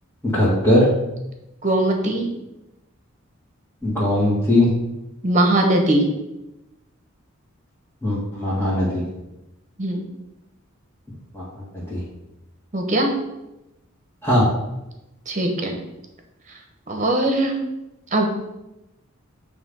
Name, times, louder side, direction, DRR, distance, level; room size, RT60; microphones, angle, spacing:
voice 1, 0.2-0.9 3.8-4.7 8.0-9.0 11.3-11.4 11.7-12.0 14.2-14.5, left 1 dB, 10° left, -10 dB, 1.9 m, -19 dB
voice 2, 1.6-2.3 5.2-6.1 9.8-10.0 12.7-13.1 15.3-15.8 16.9-17.6 18.1-18.3, right 1 dB, 35° right, 2 dB, 1.3 m, -20 dB
8.7 x 3.6 x 5.4 m, 0.95 s
head